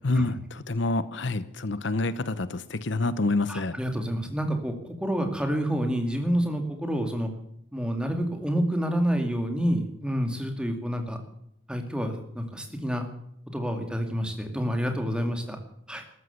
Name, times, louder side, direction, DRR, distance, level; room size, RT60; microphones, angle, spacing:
voice 1, 0.0-0.4 0.7-3.8, left 2 dB, 60° left, 15 dB, 0.8 m, -27 dB
voice 2, 3.5-7.3 7.7-11.2 11.7-13.0 13.5-15.6 15.9-16.0, equal, 5° right, 5 dB, 2.3 m, -28 dB
14.0 x 13.0 x 8.1 m, 0.74 s
head